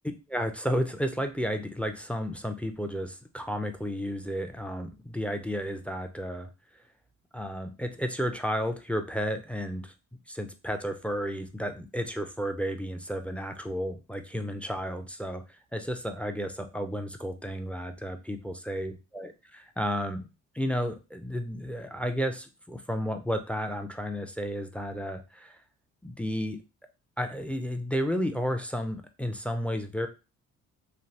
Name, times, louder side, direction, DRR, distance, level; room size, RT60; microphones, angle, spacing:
voice 1, 0.3-6.5 7.3-9.9 10.3-15.4 15.7-20.3 20.5-25.6 26.0-26.6 27.2-30.1, equal, 5° left, 6 dB, 0.4 m, -32 dB
3.2 x 2.3 x 2.7 m, 0.30 s
cardioid pair, 90°, 30 cm